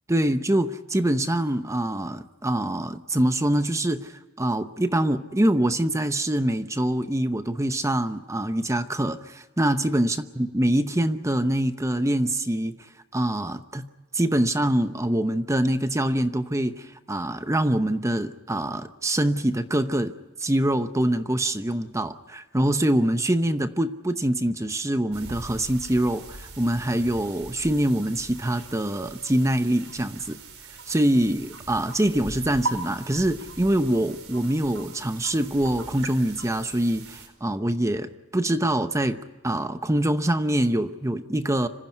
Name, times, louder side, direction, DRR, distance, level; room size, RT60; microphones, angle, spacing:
voice 1, 0.1-12.8 13.1-13.8 14.1-20.1 20.4-30.4 30.9-39.2 39.4-41.7, right 1 dB, 15° right, 9 dB, 0.8 m, -24 dB
sound 1, 25.1-37.3, right 3 dB, 75° right, 4.7 m, -40 dB
26.5 x 15.5 x 9.4 m, 1.3 s
head